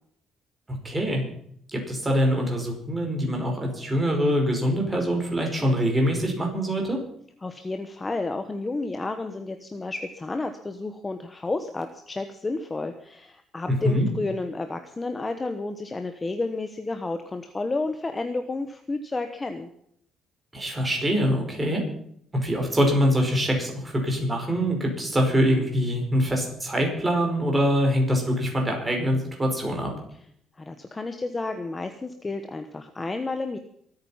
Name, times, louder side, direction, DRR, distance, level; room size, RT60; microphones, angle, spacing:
voice 1, 0.7-1.2 1.7-7.0 13.7-14.1 20.5-21.8 22.3-29.9, equal, 15° right, 1 dB, 5.0 m, -24 dB
voice 2, 7.4-19.7 30.6-33.6, left 3 dB, 15° left, 7 dB, 1.0 m, -31 dB
24.0 x 9.1 x 5.7 m, 0.68 s
cardioid pair, 170°, 0 cm